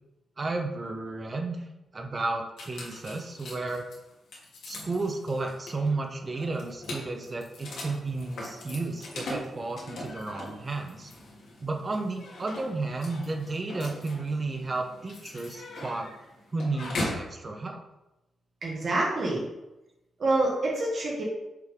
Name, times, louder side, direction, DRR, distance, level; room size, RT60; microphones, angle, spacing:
voice 1, 0.4-1.6 1.9-3.9 4.6-11.1 11.6-16.1 16.5-17.8, right 3 dB, 25° right, 4 dB, 0.7 m, -32 dB
sound 1, 2.6-17.3, left 1 dB, 80° left, 1.8 m, -40 dB
voice 2, 18.6-19.4 20.2-21.2, right 2 dB, 45° right, -4 dB, 1.3 m, -26 dB
6.7 x 3.5 x 4.9 m, 0.95 s
wide cardioid pair, 175°, 0 cm